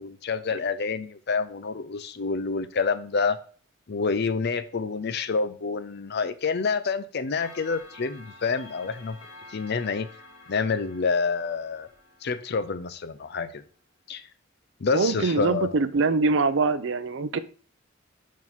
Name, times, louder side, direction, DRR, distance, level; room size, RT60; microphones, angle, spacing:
voice 1, 0.0-3.4 3.9-9.2 9.5-10.1 10.5-11.9 12.2-13.6 14.1-14.2 14.8-15.8, left 4 dB, 55° left, 0.6 m, -28 dB
Clock, 7.4-13.4, left 2 dB, 90° left, 1.4 m, -50 dB
voice 2, 14.9-17.4, right 4 dB, 65° right, 0.5 m, -23 dB
6.1 x 4.6 x 3.6 m
head